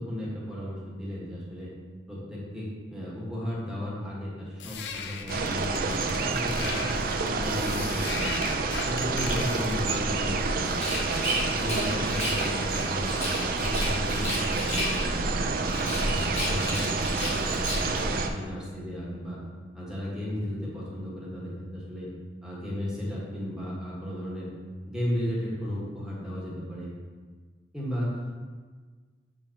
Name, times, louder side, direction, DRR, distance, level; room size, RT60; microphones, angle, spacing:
voice 1, 0.0-1.7 2.1-6.8 7.2-8.3 8.8-10.7 11.1-15.1 15.6-19.4 19.7-22.1 22.4-24.5 24.9-26.9 27.7-28.3, equal, 5° right, -7 dB, 1.5 m, -34 dB
sound 1, 4.6-13.1, left 5 dB, 80° left, 0.5 m, -39 dB
sound 2, 5.3-18.3, right 3 dB, 55° right, 0.5 m, -28 dB
Rattle, 10.6-12.5 13.0-15.3 15.6-18.1, left 1 dB, 40° left, 1.6 m, -34 dB
7.3 x 4.8 x 2.9 m, 1.5 s
head